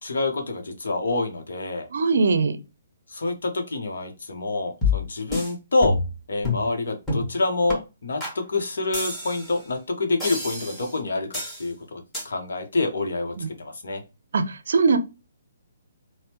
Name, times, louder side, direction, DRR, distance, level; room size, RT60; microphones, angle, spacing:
voice 1, 0.0-1.9 3.1-6.0 6.3-14.0, left 2 dB, 60° left, 0.9 m, -27 dB
voice 2, 1.9-2.6 13.4-13.5 14.3-15.0, right 4 dB, 55° right, 0.5 m, -21 dB
sound 1, 4.8-5.5 5.8-6.2 6.4-6.7 7.1-7.3 7.7-7.8 8.2-8.4 8.9-9.6 10.2-10.9 11.3-11.6 12.1-12.3, left 3 dB, 10° left, 1.5 m, -27 dB
4.1 x 2.1 x 3.0 m
figure-of-eight pair, 130°, 0 cm